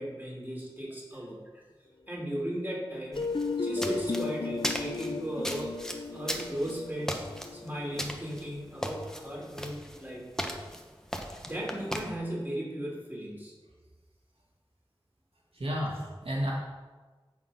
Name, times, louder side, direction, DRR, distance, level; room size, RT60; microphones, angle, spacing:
voice 1, 0.0-1.6 2.1-3.3 3.6-5.8 6.1-7.2 7.5-10.3 11.4-13.5, right 1 dB, 20° right, -4 dB, 4.0 m, -36 dB
sound 1, 3.1-12.0, equal, 5° left, 1.3 m, -38 dB
sound 2, 3.2-9.0, left 4 dB, 60° left, 0.7 m, -35 dB
voice 2, 15.5-16.5, equal, 80° right, -3 dB, 1.9 m, -32 dB
15.0 x 5.0 x 6.0 m, 1.3 s
wide cardioid pair, 40°, 10 cm